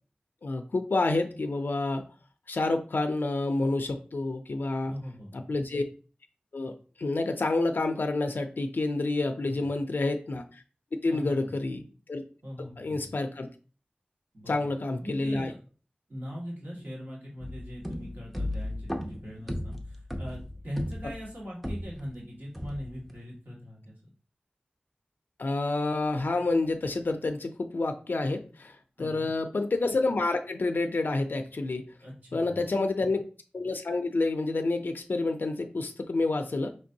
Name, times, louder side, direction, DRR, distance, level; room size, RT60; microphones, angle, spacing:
voice 1, 0.4-2.0 2.5-4.9 5.3-5.8 6.5-10.6 11.0-12.2 12.8-13.5 14.5-15.5 25.4-31.8 32.3-33.2 33.5-36.7, left 2 dB, 85° left, 6 dB, 0.4 m, -29 dB
voice 2, 4.8-5.3 9.4-9.7 11.1-11.5 12.4-13.1 14.3-14.7 15.0-15.6 16.1-24.0 29.0-29.3 32.0-32.5, equal, 60° right, -5 dB, 1.8 m, -41 dB
sound 1, 17.4-22.2 22.5-23.1, left 1 dB, ahead, 0.7 m, -36 dB
5.1 x 3.2 x 2.7 m, 0.38 s
wide cardioid pair, 65°, 3 cm